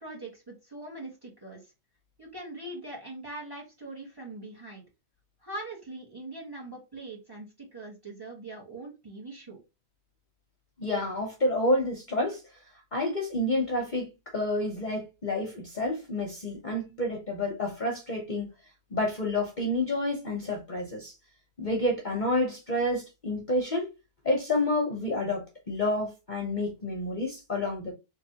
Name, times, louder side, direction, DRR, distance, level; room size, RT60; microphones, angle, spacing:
voice 1, 0.0-1.6 2.2-4.8 5.4-9.6, right 2 dB, 15° right, 1.6 m, -42 dB
voice 2, 10.8-12.4 12.9-18.5 18.9-21.1 21.6-23.9 24.2-27.9, left 1 dB, 35° left, 1.0 m, -29 dB
3.7 x 3.3 x 2.8 m
omnidirectional pair, 1.5 m